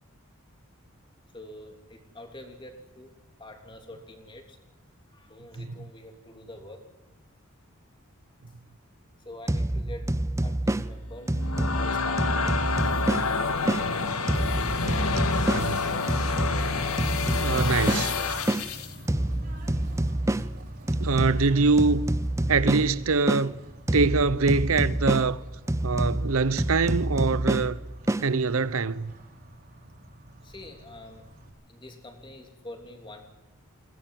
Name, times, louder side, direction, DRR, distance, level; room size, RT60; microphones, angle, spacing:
voice 1, 1.3-3.1 3.4-4.6 5.1-6.9 9.2-10.1 10.4-13.0 30.4-31.3 31.7-33.2, left 1 dB, 20° left, 3.2 m, -46 dB
sound 1, 9.5-13.9 14.3-18.7 19.1-23.5 23.9-28.3, right 1 dB, 15° right, 0.7 m, -28 dB
sound 2, 11.2-19.0, left 4 dB, 80° left, 2.0 m, -28 dB
voice 2, 15.3-15.8 17.4-18.1 21.0-22.1 22.5-23.6 23.9-25.4 25.8-27.8 28.2-29.1, right 4 dB, 70° right, 0.8 m, -24 dB
Bird / Train, 18.1-31.5, right 1 dB, 45° right, 4.7 m, -47 dB
22.0 x 18.0 x 7.6 m
head